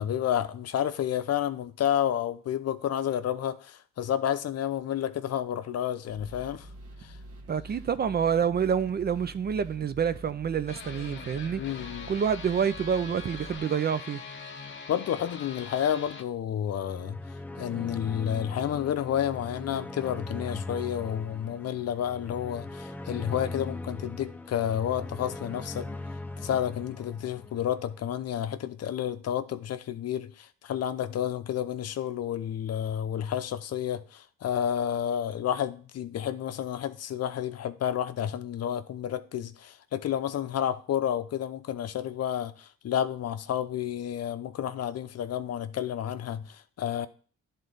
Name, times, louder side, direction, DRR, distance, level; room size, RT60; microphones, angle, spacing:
voice 1, 0.0-6.7 7.0-7.1 11.6-12.1 14.9-17.2 17.6-25.9 26.4-47.1, left 10 dB, 55° left, 0.6 m, -30 dB
sound 1, 6.1-13.6, right 1 dB, 50° right, 1.6 m, -46 dB
voice 2, 7.5-11.6 12.1-14.2, right 7 dB, 35° right, 0.4 m, -27 dB
sound 2, 10.7-16.2, left 5 dB, 40° left, 1.0 m, -43 dB
sound 3, 16.7-28.0, left 2 dB, 5° left, 0.7 m, -40 dB
11.0 x 3.8 x 3.9 m
cardioid pair, 90°, 30 cm